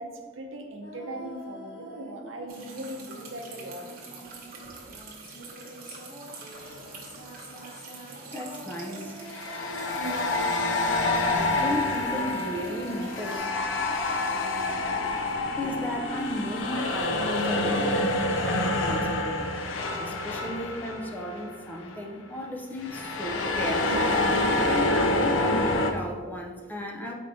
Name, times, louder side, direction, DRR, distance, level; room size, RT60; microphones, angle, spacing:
voice 1, 0.0-3.9 4.6-4.9, right 1 dB, 80° right, 2 dB, 0.7 m, -39 dB
sound 1, 0.8-2.9 3.1-18.9, right 1 dB, 55° left, 1.5 m, -45 dB
sound 2, 2.5-13.4, right 3 dB, 50° right, 0.9 m, -44 dB
sound 3, 6.5-6.8 9.2-21.6 21.8-22.1 22.8-25.9, left 2 dB, 70° left, 0.5 m, -27 dB
voice 2, 8.3-9.2 11.3-13.5 15.6-18.1 18.4-24.1 24.7-27.1, left 1 dB, 10° left, 0 dB, 0.4 m, -35 dB
4.7 x 4.3 x 2.6 m, 1.5 s
head